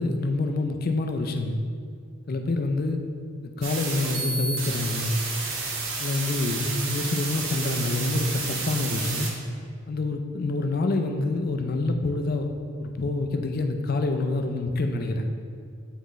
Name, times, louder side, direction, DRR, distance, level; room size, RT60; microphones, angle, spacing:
voice 1, 0.0-1.6 2.3-3.0 3.4-5.1 6.0-9.3 9.9-12.5 12.8-15.3, left 2 dB, 45° left, 5 dB, 0.4 m, -27 dB
sound 1, 3.6-9.3, right 3 dB, 65° right, 1.1 m, -31 dB
7.9 x 4.3 x 3.1 m, 2.3 s
head